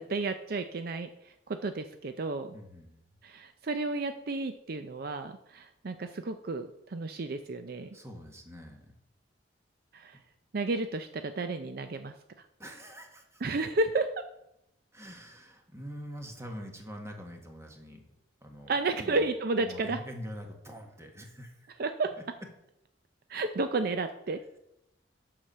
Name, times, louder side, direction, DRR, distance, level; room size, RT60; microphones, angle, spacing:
voice 1, 0.0-2.5 3.2-8.0 9.9-10.2 10.5-12.1 13.4-14.1 18.7-20.0 21.8-22.1 23.3-24.4, right 3 dB, 55° right, 8 dB, 0.5 m, -32 dB
voice 2, 2.5-3.0 7.9-8.9 12.6-13.4 14.9-18.0 18.4-18.7 19.0-19.3 19.6-21.8, equal, 15° right, 3 dB, 1.4 m, -44 dB
7.8 x 5.8 x 6.7 m, 0.82 s
head